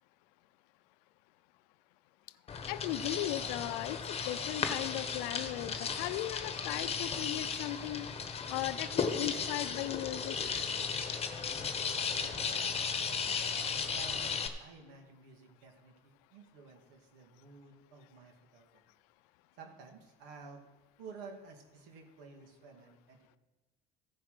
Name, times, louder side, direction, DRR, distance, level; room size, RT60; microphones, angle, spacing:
sound 1, 2.5-14.5, left 5 dB, 30° left, 1.1 m, -35 dB
voice 1, 2.7-8.1 8.5-10.4, left 15 dB, 85° left, 16 dB, 0.5 m, -37 dB
voice 2, 11.9-13.1 13.8-14.3 14.6-18.8 19.6-20.6 21.0-23.2, right 4 dB, 90° right, 2 dB, 2.4 m, -52 dB
15.0 x 5.8 x 5.1 m, 1.2 s
supercardioid pair, 105°, 20 cm